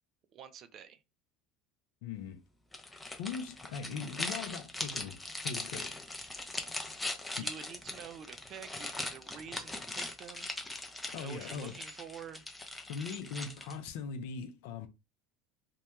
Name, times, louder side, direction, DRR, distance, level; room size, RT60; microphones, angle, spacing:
voice 1, 0.3-1.0 7.4-10.5 11.1-12.5, right 8 dB, 45° right, 0.3 m, -48 dB
voice 2, 2.0-2.4 3.2-6.0 7.4-7.5 11.1-11.8 12.9-14.9, left 6 dB, 70° left, 0.5 m, -40 dB
sound 1, 2.7-13.9, left 2 dB, 10° left, 0.5 m, -40 dB
2.2 x 2.1 x 2.9 m
supercardioid pair, 100°, 0 cm